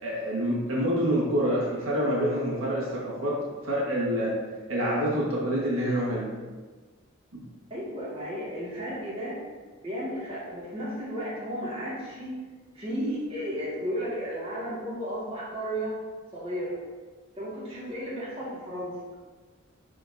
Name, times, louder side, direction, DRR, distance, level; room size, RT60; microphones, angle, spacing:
voice 1, 0.0-3.4 3.6-4.3 4.7-6.3 7.3-7.4, equal, 80° right, -5 dB, 1.6 m, -27 dB
voice 2, 7.7-9.3 9.8-12.3 12.7-15.9 16.3-16.8 17.4-18.9, equal, 25° right, -8 dB, 2.0 m, -33 dB
11.0 x 3.8 x 2.7 m, 1.4 s
head